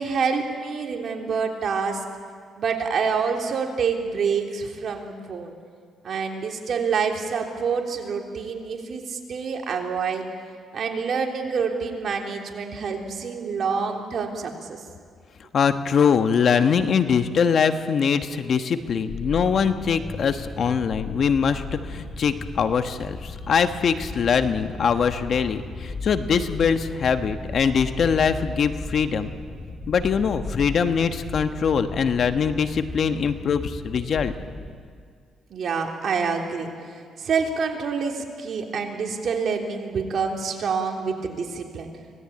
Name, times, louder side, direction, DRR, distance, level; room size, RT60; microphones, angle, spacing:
voice 1, 0.0-2.0 2.6-5.5 6.0-10.2 10.7-14.8 35.5-41.9, right 5 dB, 60° right, 1 dB, 3.3 m, -27 dB
voice 2, 15.5-29.3 29.9-34.3, left 6 dB, 55° left, 8 dB, 1.2 m, -22 dB
sound 1, 19.1-34.7, left 3 dB, 30° left, 5.2 m, -36 dB
25.5 x 18.5 x 8.7 m, 2.1 s
cardioid pair, 90°, 0 cm